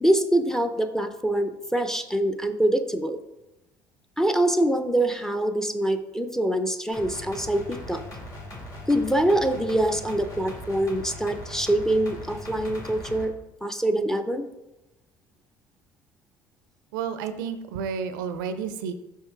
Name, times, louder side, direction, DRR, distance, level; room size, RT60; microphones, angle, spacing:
voice 1, 0.0-3.2 4.2-8.0 8.9-13.3 13.6-14.5, right 1 dB, 5° left, 8 dB, 0.6 m, -24 dB
sound 1, 6.9-13.3, left 1 dB, 35° left, 2.0 m, -40 dB
voice 2, 16.9-18.9, right 6 dB, 75° right, 10 dB, 0.4 m, -31 dB
5.6 x 5.4 x 3.5 m, 0.97 s
hypercardioid pair, 60°, 11 cm